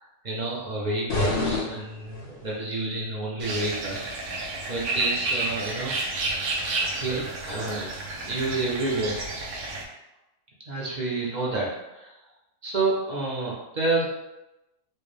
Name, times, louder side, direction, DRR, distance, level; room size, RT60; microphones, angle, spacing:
voice 1, 0.0-4.2 4.7-5.9 6.8-7.9 8.2-9.2 10.7-12.2 12.6-14.0, right 2 dB, 40° right, -4 dB, 0.6 m, -29 dB
sound 1, 1.1-2.6, left 2 dB, 50° left, 0.9 m, -28 dB
sound 2, 3.4-9.8, right 2 dB, 80° right, 1.2 m, -31 dB
4.5 x 2.2 x 3.2 m, 0.94 s
omnidirectional pair, 1.5 m